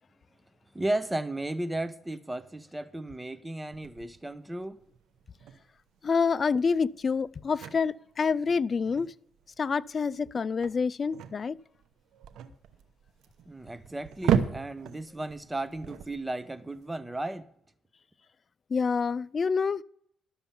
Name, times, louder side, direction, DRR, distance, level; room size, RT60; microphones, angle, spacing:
voice 1, 0.7-4.8 13.5-17.5, right 1 dB, 10° right, 0.8 m, -34 dB
sound 1, 3.7-16.8, right 8 dB, 80° right, 0.9 m, -36 dB
voice 2, 6.0-9.1 9.6-11.6 18.7-19.8, left 5 dB, 40° left, 0.4 m, -27 dB
12.0 x 7.0 x 7.0 m
cardioid pair, 90°, 0 cm